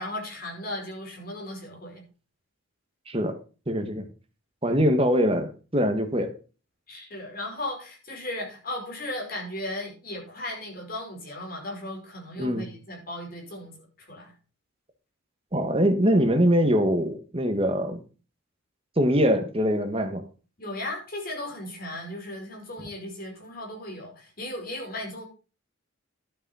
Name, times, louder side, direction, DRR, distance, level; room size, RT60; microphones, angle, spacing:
voice 1, 0.0-2.0 6.9-14.3 20.6-25.2, left 1 dB, 45° left, 5.0 m, -36 dB
voice 2, 3.1-3.4 3.7-4.0 4.6-6.3 12.4-12.7 15.5-18.0 19.0-20.2, equal, 25° right, 1.6 m, -23 dB
11.5 x 6.6 x 5.6 m
head